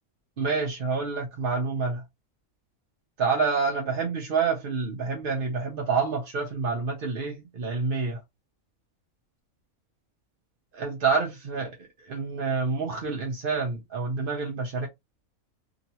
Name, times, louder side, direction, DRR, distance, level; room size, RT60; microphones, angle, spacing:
voice 1, 0.4-2.0 3.2-8.2 10.7-11.7 12.0-14.9, right 4 dB, 50° right, 0.7 m, -28 dB
2.9 x 2.8 x 2.8 m
omnidirectional pair, 1.5 m